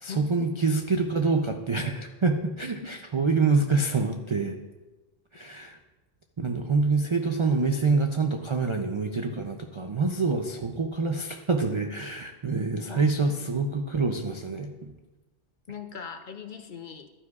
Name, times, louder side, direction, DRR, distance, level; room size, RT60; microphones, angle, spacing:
voice 1, 0.0-4.6 5.3-5.8 6.4-14.9, right 4 dB, 55° right, 4 dB, 0.3 m, -26 dB
voice 2, 12.9-13.4 15.7-17.1, left 7 dB, 55° left, 7 dB, 0.6 m, -40 dB
11.5 x 9.4 x 2.4 m, 1.1 s
omnidirectional pair, 1.2 m